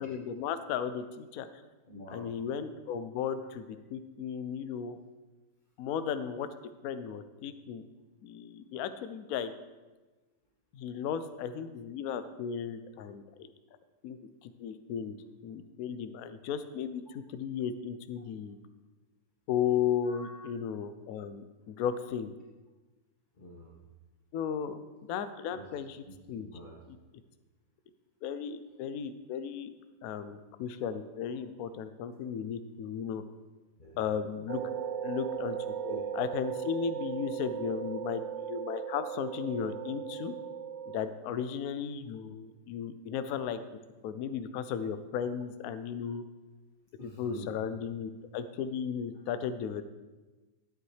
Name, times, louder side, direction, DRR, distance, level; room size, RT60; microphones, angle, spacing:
voice 1, 0.0-1.5 2.1-5.0 5.8-6.5 6.8-7.8 8.2-9.5 10.7-13.5 14.0-15.2 15.4-18.6 19.5-22.3 24.3-24.8 25.1-26.5 26.9-27.0 28.2-29.7 30.0-33.2 34.0-34.6 35.0-35.6 36.1-40.3 40.9-43.6 44.0-46.2 47.0-49.8, left 8 dB, 75° left, 11 dB, 0.8 m, -35 dB
voice 2, 1.9-2.3 20.0-20.6 23.4-23.8 25.5-25.6 26.1-26.8 33.8-34.0 35.7-36.0 47.0-47.6, right 1 dB, 35° left, -4 dB, 0.9 m, -45 dB
sound 1, 34.5-41.0, right 8 dB, 90° right, 0.7 m, -37 dB
12.0 x 8.1 x 3.2 m, 1.2 s
omnidirectional pair, 2.1 m